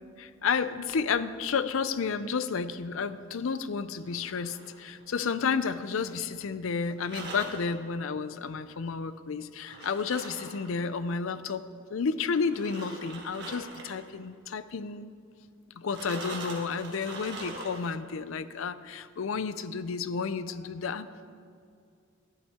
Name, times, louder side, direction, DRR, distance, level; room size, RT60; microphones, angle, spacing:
voice 1, 0.2-15.1 15.8-21.1, left 5 dB, 70° left, 14 dB, 0.5 m, -31 dB
sound 1, 4.0-5.4 7.0-7.7 9.6-10.8 12.4-14.0 15.9-18.0, right 2 dB, 55° right, 1.7 m, -42 dB
12.5 x 11.0 x 4.3 m, 2.4 s
head